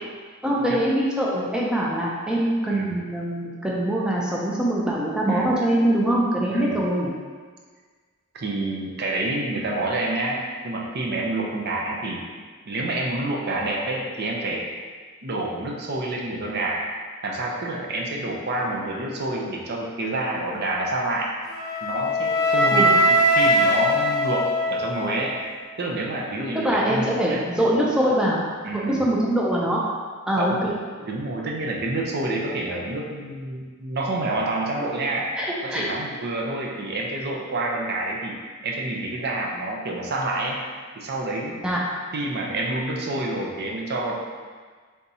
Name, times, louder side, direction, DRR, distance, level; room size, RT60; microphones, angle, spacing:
voice 1, 0.4-7.1 22.7-22.9 26.5-28.4 28.7-29.8 30.3-30.7 35.4-35.9 41.6-41.8, right 1 dB, 5° right, -5 dB, 0.4 m, -23 dB
voice 2, 2.7-3.0 5.3-5.5 6.5-6.8 8.3-12.3 12.7-14.7 15.2-16.8 17.2-21.3 21.8-25.3 25.8-27.4 28.6-29.0 30.3-30.6 31.0-35.3 35.6-40.6 41.0-41.6 42.1-44.1, right 2 dB, 50° right, -2 dB, 0.6 m, -28 dB
Wind instrument woodwind instrument, 21.5-25.6, equal, 15° left, 0.8 m, -21 dB
3.5 x 2.7 x 4.1 m, 1.5 s
head